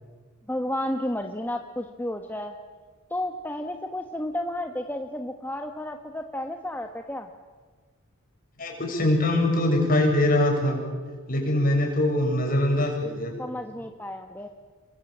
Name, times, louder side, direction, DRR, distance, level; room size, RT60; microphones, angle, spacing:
voice 1, 0.5-2.5 3.1-7.3 13.4-14.5, left 1 dB, 10° left, 4 dB, 1.2 m, -32 dB
voice 2, 8.6-10.8 11.3-13.3, left 1 dB, 40° left, 1 dB, 7.2 m, -23 dB
29.0 x 22.5 x 8.6 m, 1.5 s
head